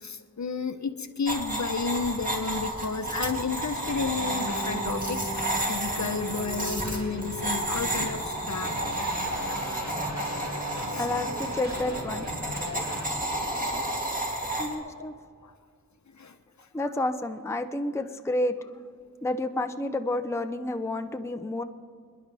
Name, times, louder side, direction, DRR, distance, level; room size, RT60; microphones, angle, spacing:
voice 1, 0.0-8.7 10.9-11.1 13.5-13.6 14.8-15.1 15.4-15.5 16.1-16.9, left 4 dB, 55° left, 8 dB, 0.8 m, -32 dB
sound 1, 1.3-14.7, right 1 dB, 25° right, 2.8 m, -31 dB
sound 2, 3.3-13.1, equal, 50° right, 2.5 m, -37 dB
voice 2, 11.0-12.3 14.6-15.1 16.7-18.6 19.2-21.6, left 1 dB, 10° left, 7 dB, 0.6 m, -30 dB
27.5 x 10.5 x 3.4 m, 2.3 s
wide cardioid pair, 60°, 34 cm